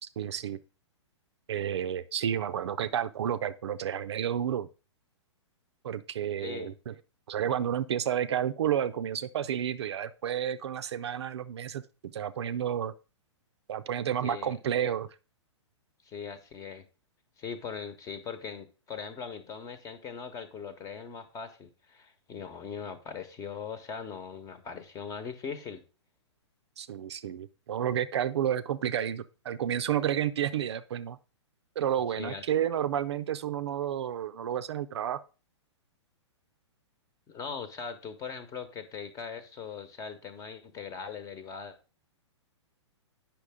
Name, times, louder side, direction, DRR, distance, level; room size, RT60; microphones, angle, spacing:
voice 1, 0.0-0.6 1.5-4.7 5.8-6.9 7.3-12.9 13.7-15.1 26.8-31.2 31.8-35.2, right 9 dB, 65° right, 11 dB, 0.6 m, -31 dB
voice 2, 6.4-6.7 14.2-14.6 16.0-16.9 17.4-25.8 32.2-32.4 37.3-41.8, left 6 dB, 20° left, 12 dB, 1.1 m, -40 dB
8.4 x 5.9 x 3.6 m, 0.33 s
hypercardioid pair, 120°, 15 cm